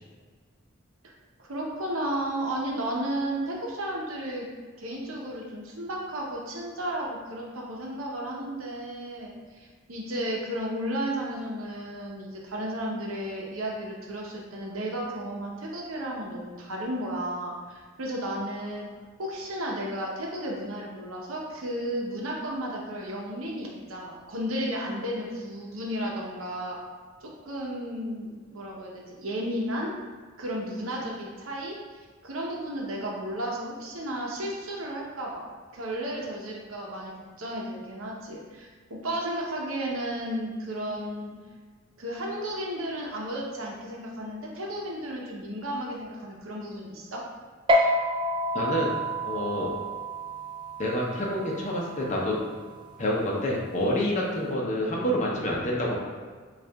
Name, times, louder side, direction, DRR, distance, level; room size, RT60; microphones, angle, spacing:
voice 1, 1.4-4.5 4.8-18.9 19.2-26.8 27.2-29.9 30.4-41.3 42.0-47.2, right 1 dB, 85° right, -2 dB, 0.8 m, -33 dB
sound 1, 47.7-54.5, equal, 25° right, 0.3 m, -30 dB
voice 2, 48.5-48.9 49.2-49.7 50.8-52.4 53.0-56.0, left 1 dB, 35° left, -2 dB, 0.6 m, -27 dB
6.4 x 2.4 x 2.2 m, 1.5 s
head